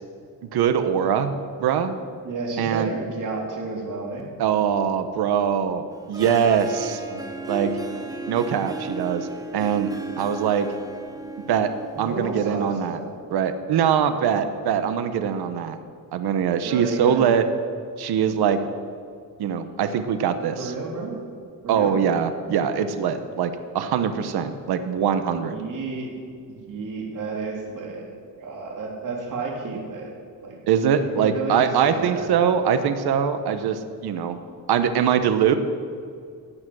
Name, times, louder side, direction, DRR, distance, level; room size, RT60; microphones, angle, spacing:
voice 1, 0.5-1.3 1.6-2.0 2.6-2.9 4.4-5.8 6.1-7.0 7.5-7.7 8.3-9.3 9.5-9.9 10.2-10.7 11.5-11.7 12.0-13.0 13.3-15.8 16.1-17.4 18.0-18.6 19.4-20.7 21.7-25.6 30.7-34.4 34.7-35.5, right 8 dB, 80° right, 9 dB, 1.1 m, -22 dB
voice 2, 2.2-4.2 7.0-7.3 7.6-8.0 10.2-10.5 12.0-13.1 16.6-17.2 20.6-21.2 21.6-22.0 25.4-26.1 26.4-28.1 28.4-30.1 30.4-30.6 31.0-32.3, right 3 dB, 55° right, -1 dB, 3.6 m, -32 dB
Harp, 5.9-13.0, right 3 dB, 10° right, 1.1 m, -35 dB
16.5 x 10.0 x 6.3 m, 2.2 s
cardioid pair, 130°, 38 cm